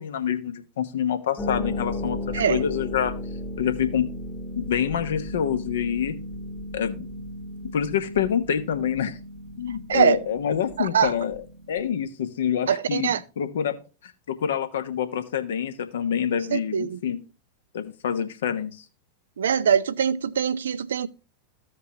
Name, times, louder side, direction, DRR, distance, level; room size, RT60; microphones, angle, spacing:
voice 1, 0.0-3.1 3.6-4.1 4.5-6.1 6.7-7.1 7.7-9.2 9.6-11.4 11.7-13.8 14.3-17.2 17.7-18.7, left 8 dB, 60° left, 1.0 m, -26 dB
Harp, 1.4-11.9, left 1 dB, 15° left, 1.2 m, -35 dB
voice 2, 10.8-11.1 12.7-13.2 16.5-17.0 19.4-21.1, right 7 dB, 65° right, 0.5 m, -23 dB
15.0 x 5.1 x 2.9 m
figure-of-eight pair, 90°, 0 cm